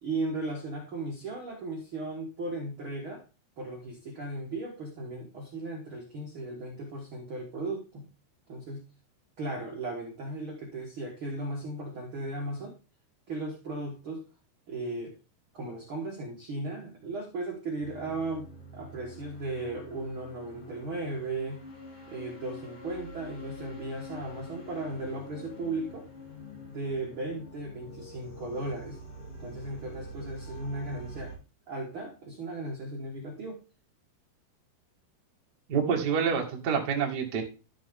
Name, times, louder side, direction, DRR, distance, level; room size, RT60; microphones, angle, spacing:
voice 1, 0.0-3.2 3.6-8.1 8.5-8.9 9.4-12.7 13.3-14.3 14.7-15.2 15.5-21.6 22.1-26.1 26.6-29.0 29.4-31.3 31.7-33.6, right 2 dB, 85° right, 0 dB, 1.1 m, -36 dB
sound 1, 17.8-31.3, equal, 75° left, 6.1 m, -45 dB
voice 2, 35.7-37.4, right 6 dB, 40° right, 0 dB, 1.5 m, -27 dB
12.5 x 6.6 x 3.7 m, 0.32 s
omnidirectional pair, 4.9 m